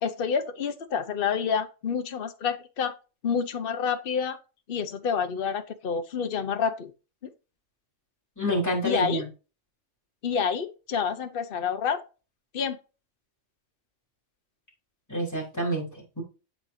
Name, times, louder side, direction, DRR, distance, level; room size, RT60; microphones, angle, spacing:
voice 1, 0.0-2.9 3.2-4.4 4.7-6.9 7.2-7.3 8.8-9.2 10.2-12.0 12.5-12.8, left 6 dB, 50° left, 1.0 m, -28 dB
voice 2, 8.4-9.2 15.1-15.9 16.2-16.3, equal, 15° left, 3.9 m, -27 dB
8.4 x 7.4 x 2.7 m
omnidirectional pair, 1.3 m